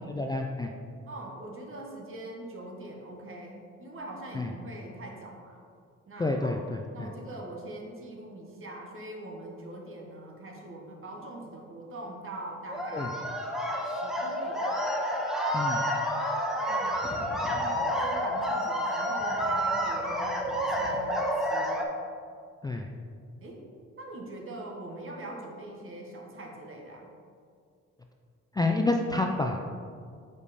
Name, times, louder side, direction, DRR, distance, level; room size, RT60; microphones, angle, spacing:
voice 1, 0.1-0.7 4.3-4.5 6.2-7.1 12.9-13.1 15.5-15.8 22.6-22.9 28.5-29.6, left 2 dB, 15° left, 2 dB, 0.3 m, -29 dB
voice 2, 1.1-5.6 6.1-6.6 6.9-13.3 13.9-14.7 16.5-17.0 17.4-21.9 23.4-23.6 23.9-27.1, right 2 dB, 45° right, 0 dB, 1.2 m, -42 dB
sound 1, 12.7-21.8, equal, ahead, 0.8 m, -29 dB
5.2 x 4.9 x 4.1 m, 2.2 s
cardioid pair, 90°, 30 cm